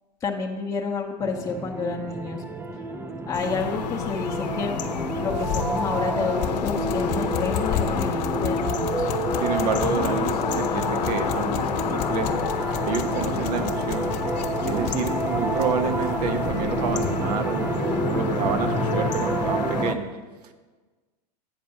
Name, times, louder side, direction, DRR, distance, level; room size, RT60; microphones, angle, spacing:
voice 1, 0.2-2.4 3.3-4.8 5.1-9.1, left 4 dB, 15° left, -1 dB, 0.8 m, -30 dB
sound 1, 1.2-20.0, right 2 dB, 10° right, 0.5 m, -29 dB
sound 2, 3.3-20.0, left 8 dB, 80° left, 0.7 m, -30 dB
sound 3, 5.3-17.2, left 9 dB, 45° left, 1.1 m, -34 dB
voice 2, 9.4-12.4 12.9-14.1 14.7-20.1 20.4-20.5, right 5 dB, 65° right, 7 dB, 1.1 m, -28 dB
8.6 x 5.2 x 6.0 m, 1.3 s
hypercardioid pair, 110°, 21 cm